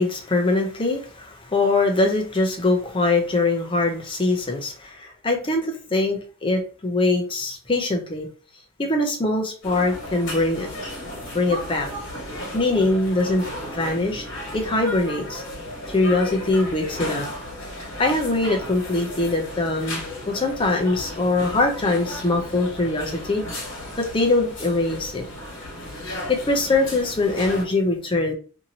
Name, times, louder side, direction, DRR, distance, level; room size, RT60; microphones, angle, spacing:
voice 1, 0.0-8.3 8.8-10.7 11.3-11.9 12.5-13.4 13.7-14.2 14.5-15.4 15.9-17.3 18.0-23.4 24.0-25.2 26.3-28.3, left 2 dB, 25° left, 2 dB, 0.5 m, -22 dB
sound 1, 9.6-27.7, left 1 dB, 55° left, 1.3 m, -35 dB
2.7 x 2.7 x 2.7 m, 0.39 s
head